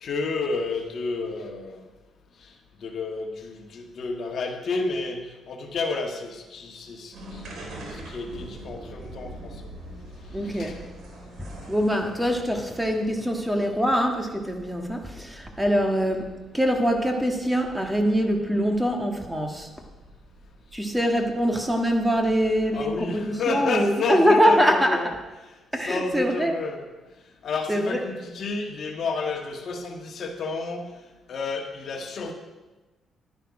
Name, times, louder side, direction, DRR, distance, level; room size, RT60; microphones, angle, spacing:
voice 1, 0.0-1.9 2.4-2.5 2.8-9.6 10.4-10.8 22.7-25.1 25.8-26.8 27.4-30.9 31.3-32.3, left 3 dB, 60° left, 3 dB, 1.5 m, -31 dB
sound 1, 7.1-23.3, right 1 dB, 70° right, 2.8 m, -45 dB
voice 2, 10.3-10.8 11.4-19.7 20.7-25.0 25.7-26.5 27.7-28.0, equal, 5° right, 3 dB, 1.6 m, -23 dB
11.0 x 10.5 x 4.8 m, 1.2 s
cardioid pair, 90°, 0 cm